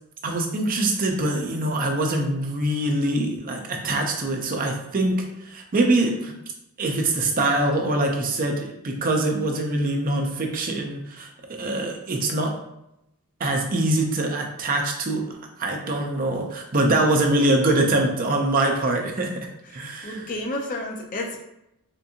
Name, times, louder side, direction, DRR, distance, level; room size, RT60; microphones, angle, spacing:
voice 1, 0.2-6.4 6.8-12.6 13.4-19.5 19.7-20.3, right 2 dB, 40° right, 2 dB, 0.5 m, -24 dB
voice 2, 19.7-21.4, left 1 dB, 35° left, 1 dB, 0.5 m, -31 dB
3.5 x 2.5 x 2.7 m, 0.85 s
head